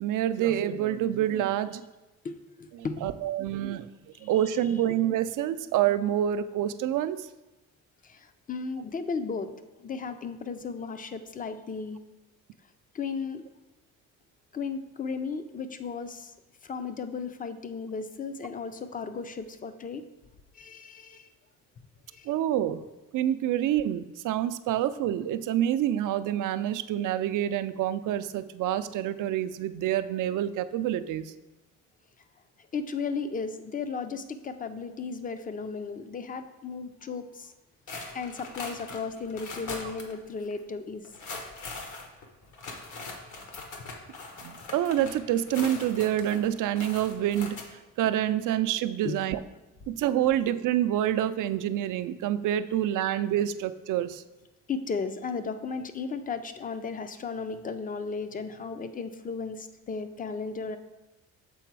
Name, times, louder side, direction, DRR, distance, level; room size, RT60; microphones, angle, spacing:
voice 1, 0.0-1.8 2.8-3.9 4.2-7.3 22.3-22.8 23.1-31.3 44.4-47.6 48.0-49.4 49.9-54.2, right 11 dB, 70° right, 12 dB, 0.4 m, -27 dB
voice 2, 2.2-3.1 4.2-4.3 8.0-9.5 9.8-12.0 12.9-13.4 14.5-16.3 16.6-20.0 20.5-21.3 22.1-22.3 32.7-37.5 38.1-41.1 49.0-49.2 54.7-60.8, left 5 dB, 25° left, 10 dB, 0.4 m, -35 dB
sound 1, 37.9-40.1 40.4-40.5 41.0-47.6, left 3 dB, 65° left, 1.2 m, -41 dB
7.0 x 4.0 x 4.6 m, 1.1 s
cardioid pair, 105°, 32 cm